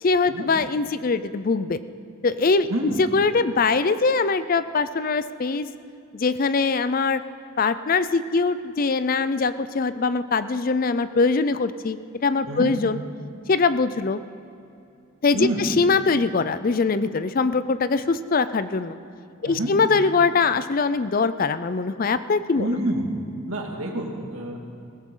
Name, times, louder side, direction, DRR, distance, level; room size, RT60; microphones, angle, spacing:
voice 1, 0.0-1.8 2.2-5.7 6.1-7.2 7.6-13.0 13.5-14.2 15.2-19.0 19.4-22.8, left 4 dB, 40° left, 13 dB, 0.4 m, -22 dB
voice 2, 2.7-3.0 12.5-12.7 15.3-15.6 19.5-19.7 22.6-23.1 23.5-24.6, right 1 dB, 75° right, 0 dB, 2.2 m, -27 dB
20.0 x 17.0 x 3.8 m, 2.6 s
head